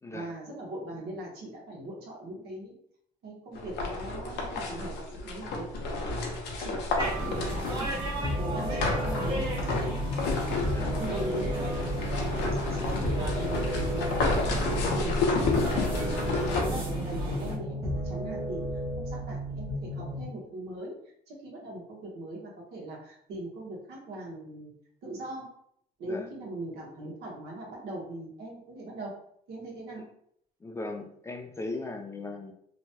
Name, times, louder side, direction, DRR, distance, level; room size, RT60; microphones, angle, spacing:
voice 1, 0.1-2.7 3.2-7.9 8.4-10.0 10.4-10.6 11.0-11.8 12.7-18.6 19.0-21.0 21.3-24.7 25.0-25.6 26.0-29.1 29.5-30.0, right 1 dB, 70° right, -2 dB, 1.1 m, -40 dB
sound 1, 3.6-8.2 8.8-16.6, left 3 dB, 80° left, 0.7 m, -31 dB
sound 2, 7.0-17.6, equal, 30° right, 1.0 m, -34 dB
sound 3, 8.2-20.2, equal, 10° right, 0.7 m, -34 dB
voice 2, 30.6-32.5, left 2 dB, 15° left, 3 dB, 0.3 m, -38 dB
3.0 x 2.2 x 2.7 m, 0.69 s
cardioid pair, 110°, 17 cm